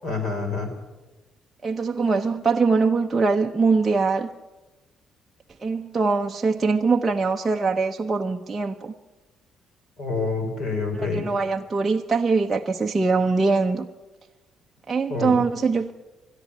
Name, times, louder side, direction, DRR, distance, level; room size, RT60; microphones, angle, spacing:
voice 1, 0.0-0.7 10.0-11.2 15.1-15.4, left 3 dB, 40° left, 7 dB, 4.4 m, -27 dB
voice 2, 1.6-4.3 5.6-8.9 10.9-13.9 14.9-15.9, right 4 dB, 15° right, 1 dB, 0.7 m, -22 dB
21.5 x 13.0 x 9.9 m, 1.1 s
cardioid pair, 170°, 0 cm